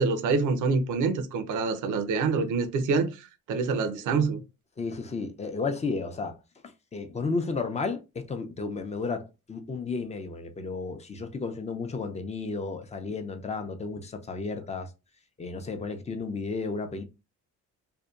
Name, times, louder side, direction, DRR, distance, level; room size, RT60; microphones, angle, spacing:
voice 1, 0.0-4.4, right 4 dB, 85° right, 0.6 m, -26 dB
voice 2, 4.8-14.9 15.4-17.0, left 4 dB, 20° left, 0.5 m, -33 dB
2.6 x 2.2 x 2.3 m
cardioid pair, 90°, 30 cm